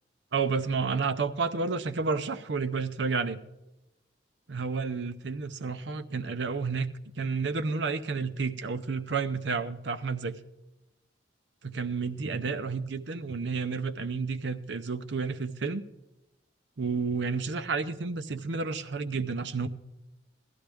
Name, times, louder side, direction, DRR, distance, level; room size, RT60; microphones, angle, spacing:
voice 1, 0.3-3.4 4.5-6.9 7.2-10.4 11.6-15.8 16.8-19.7, right 4 dB, 85° right, 10 dB, 0.6 m, -31 dB
16.0 x 11.5 x 3.5 m, 0.92 s
head